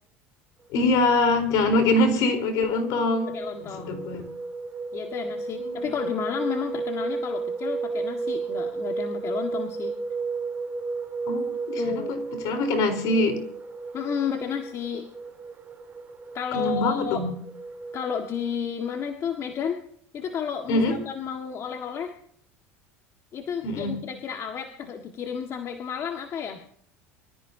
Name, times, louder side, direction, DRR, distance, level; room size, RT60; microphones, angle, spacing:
voice 1, 0.7-3.3 3.6-4.3 5.6-5.8 11.3-13.4 16.5-17.3 20.7-21.0 23.6-23.9, left 2 dB, 60° left, 6 dB, 4.2 m, -24 dB
sound 1, 0.8-18.5, right 4 dB, 25° right, 3.1 m, -34 dB
voice 2, 3.3-4.1 4.9-10.0 11.8-12.1 13.9-15.1 16.3-17.2 17.9-19.8 20.1-22.1 23.3-26.8, left 7 dB, 45° left, 4 dB, 1.8 m, -32 dB
24.5 x 14.5 x 2.8 m, 0.65 s
hypercardioid pair, 90°, 7 cm